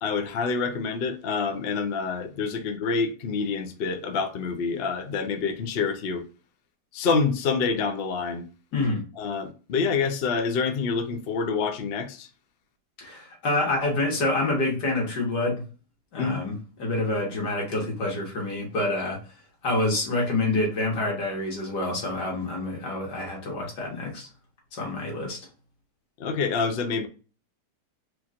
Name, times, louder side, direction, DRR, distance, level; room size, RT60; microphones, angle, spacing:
voice 1, 0.0-6.2 6.9-8.4 9.2-12.3 16.2-16.4 26.2-27.1, left 5 dB, 60° left, 0.6 m, -27 dB
voice 2, 8.7-9.0 13.0-15.6 16.1-19.2 19.6-24.3 24.7-25.4, left 2 dB, 80° left, 2.2 m, -27 dB
4.4 x 2.5 x 4.2 m
omnidirectional pair, 1.8 m